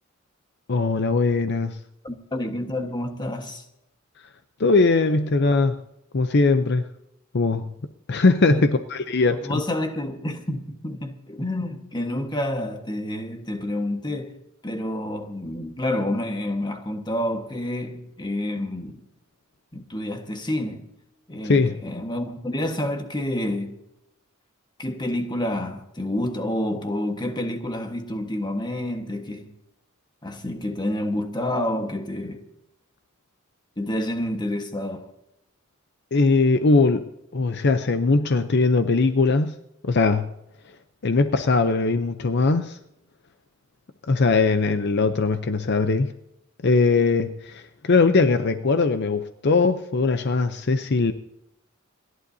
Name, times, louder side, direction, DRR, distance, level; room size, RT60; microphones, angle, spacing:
voice 1, 0.7-1.8 4.6-5.8 6.1-6.9 7.3-7.6 8.1-9.6 21.4-21.7 36.1-37.0 37.3-39.5 39.8-40.3 41.0-42.8 44.1-46.1 46.6-51.1, left 3 dB, 55° left, 0.6 m, -20 dB
voice 2, 2.0-3.6 8.5-8.6 9.3-14.4 14.6-19.1 19.7-20.9 21.3-23.7 24.8-29.5 30.2-32.4 33.8-35.1, left 1 dB, 20° left, 1.4 m, -29 dB
29.0 x 11.5 x 2.7 m
head